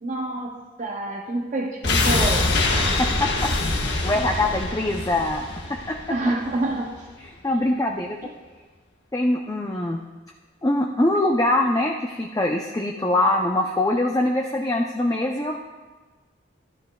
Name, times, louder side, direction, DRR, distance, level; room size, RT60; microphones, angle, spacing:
voice 1, 0.0-2.6 6.1-7.1 8.2-8.3, right 2 dB, 40° right, 0 dB, 0.6 m, -27 dB
sound 1, 1.8-6.8 7.1-7.2, left 2 dB, 60° left, 1.1 m, -24 dB
voice 2, 3.0-6.0 7.4-8.2 9.1-10.0 10.6-15.6, left 1 dB, 15° left, 1 dB, 0.4 m, -23 dB
13.5 x 12.0 x 2.2 m, 1.3 s
head